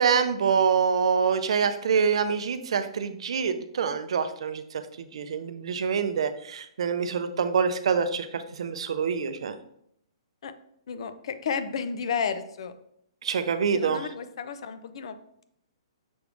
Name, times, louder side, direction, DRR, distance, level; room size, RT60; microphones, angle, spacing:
voice 1, 0.0-4.6 5.0-9.5 13.2-14.1, right 6 dB, 70° right, 10 dB, 0.5 m, -26 dB
voice 2, 10.9-12.7 13.7-15.2, left 6 dB, 65° left, 11 dB, 0.5 m, -32 dB
6.1 x 3.3 x 2.5 m, 0.72 s
hypercardioid pair, 155°, 3 cm